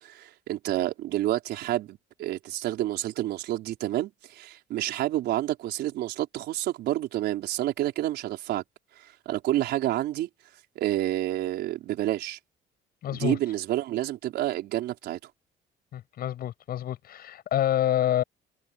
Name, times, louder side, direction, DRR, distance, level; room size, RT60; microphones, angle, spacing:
voice 1, 0.0-8.6 9.0-10.3 10.7-12.4 13.1-15.2, right 14 dB, 75° right, 4.7 m, -29 dB
voice 2, 13.0-13.4 15.9-18.2, left 11 dB, 65° left, 6.7 m, -27 dB
cardioid pair, 110°, 17 cm